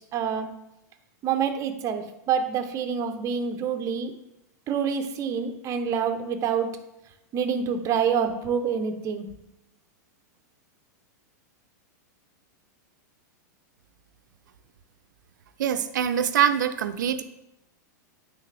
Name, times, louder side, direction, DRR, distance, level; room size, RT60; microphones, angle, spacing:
voice 1, 0.1-0.5 1.2-4.1 4.7-6.7 7.3-9.3, right 7 dB, 35° right, 7 dB, 0.8 m, -27 dB
voice 2, 15.6-17.2, right 9 dB, 80° right, 10 dB, 0.6 m, -24 dB
9.4 x 3.5 x 3.4 m, 0.91 s
hypercardioid pair, 115°, 10 cm